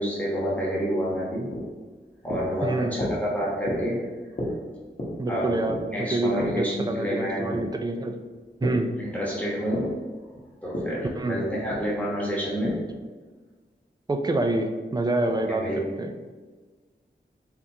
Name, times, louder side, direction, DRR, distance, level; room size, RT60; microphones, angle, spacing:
voice 1, 0.0-1.5 2.2-4.0 5.3-5.5 5.8-7.5 9.0-9.8 10.6-12.7 15.3-15.8, equal, 5° left, -6 dB, 1.2 m, -28 dB
sound 1, 1.2-8.9 9.2-13.1, equal, 40° left, 1.0 m, -34 dB
voice 2, 2.6-3.0 5.2-8.2 8.6-8.9 11.2-11.4 14.1-15.6 16.0-16.1, right 2 dB, 20° right, 5 dB, 0.4 m, -27 dB
4.4 x 2.5 x 2.7 m, 1.4 s
wide cardioid pair, 50°, 20 cm